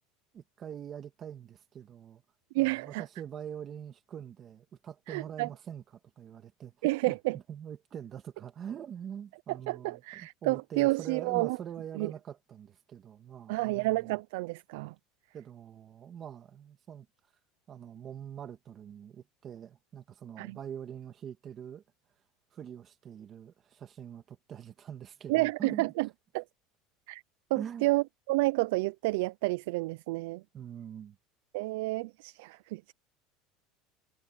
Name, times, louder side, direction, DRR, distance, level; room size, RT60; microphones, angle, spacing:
voice 1, 0.3-2.2 2.6-14.2 15.3-17.1 17.7-21.8 22.5-25.8 27.5-27.9 30.5-31.2, right 9 dB, 25° right, 2.5 m, -44 dB
voice 2, 2.5-3.0 5.1-5.5 6.8-7.4 9.5-11.6 12.0-12.1 13.5-14.9 20.4-20.6 25.3-26.1 26.3-26.4 27.1-27.2 27.5-30.4 31.5-32.9, right 22 dB, 75° right, 0.3 m, -30 dB
cardioid pair, 165°, 0 cm